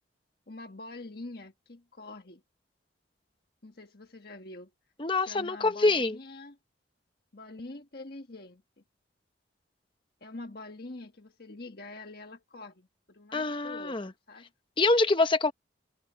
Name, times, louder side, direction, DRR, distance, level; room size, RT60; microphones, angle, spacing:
voice 1, 0.5-2.4 3.6-4.7 5.1-6.6 7.3-8.6 10.2-14.5, left 2 dB, 50° left, 1.5 m, -45 dB
voice 2, 5.0-6.2 13.3-14.1 14.8-15.5, left 3 dB, 25° left, 1.0 m, -25 dB
head